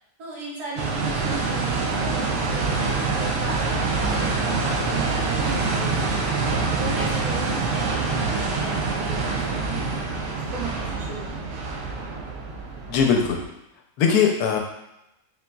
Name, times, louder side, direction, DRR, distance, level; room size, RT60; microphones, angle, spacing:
voice 1, 0.2-6.2 6.5-11.6, right 2 dB, 85° right, -7 dB, 1.8 m, -37 dB
sound 1, 0.8-13.4, right 4 dB, 65° right, 0.8 m, -25 dB
voice 2, 12.9-13.4 14.0-14.6, left 6 dB, 90° left, 2 dB, 1.1 m, -20 dB
4.0 x 3.7 x 2.2 m, 0.87 s
omnidirectional pair, 1.6 m